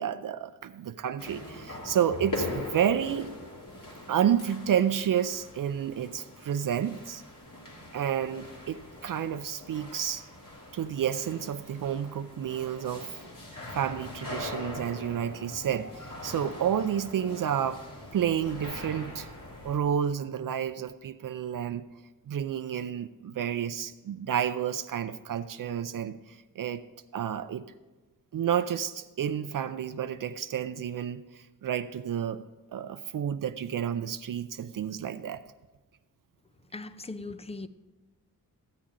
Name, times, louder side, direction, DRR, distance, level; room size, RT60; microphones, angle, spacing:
voice 1, 0.0-3.3 4.1-7.2 7.9-10.2 10.7-13.2 13.7-17.8 18.1-19.3 19.6-21.8 22.3-26.8 27.1-27.7 28.3-32.4 32.7-35.4, right 9 dB, 65° right, 11 dB, 0.5 m, -30 dB
sound 1, 1.2-19.8, left 2 dB, 60° left, 2.9 m, -42 dB
voice 2, 36.7-37.7, left 3 dB, 15° left, 12 dB, 0.5 m, -39 dB
14.0 x 8.7 x 3.8 m, 1.2 s
wide cardioid pair, 100°, 35 cm